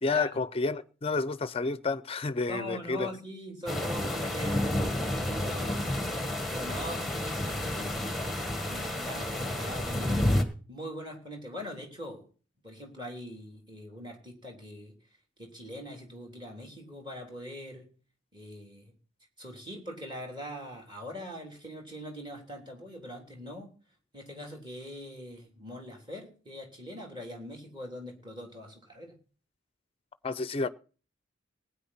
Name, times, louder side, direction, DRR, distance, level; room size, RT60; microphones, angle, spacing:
voice 1, 0.0-3.2 30.2-30.7, left 3 dB, 30° left, 0.5 m, -30 dB
voice 2, 2.5-4.7 5.2-6.0 6.5-8.1 8.7-10.3 10.7-12.2 12.6-14.9 15.4-17.9 18.3-18.9 19.4-23.7 24.1-29.2, left 1 dB, 25° right, 3.3 m, -42 dB
sound 1, 3.7-10.4, left 1 dB, ahead, 1.4 m, -30 dB
19.5 x 9.2 x 4.2 m
head